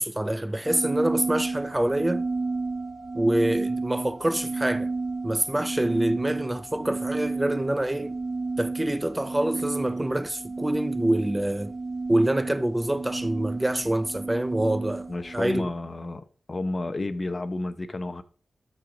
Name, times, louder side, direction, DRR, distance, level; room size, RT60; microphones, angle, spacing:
voice 1, 0.0-2.2 3.1-4.9 5.2-8.1 8.6-11.7 12.1-15.1 15.3-15.7, right 1 dB, 15° right, 0.4 m, -26 dB
sound 1, 0.6-15.6, right 3 dB, 45° right, 1.3 m, -32 dB
voice 2, 15.1-18.2, left 2 dB, 40° left, 0.9 m, -31 dB
13.0 x 4.8 x 3.9 m
cardioid pair, 70°, 0 cm